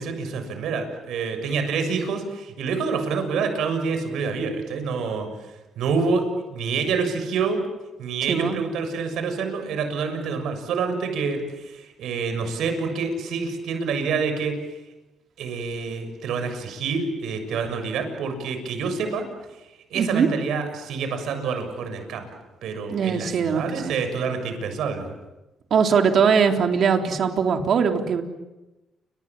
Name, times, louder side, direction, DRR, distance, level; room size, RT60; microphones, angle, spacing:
voice 1, 0.0-5.3 5.8-7.6 8.0-14.5 15.4-19.2 19.9-22.2 22.6-25.1, right 5 dB, 80° right, 7 dB, 6.8 m, -27 dB
voice 2, 19.9-20.3 22.9-24.0 25.7-28.2, right 6 dB, 60° right, 4 dB, 3.7 m, -21 dB
30.0 x 26.0 x 7.5 m, 1.0 s
cardioid pair, 90°, 0 cm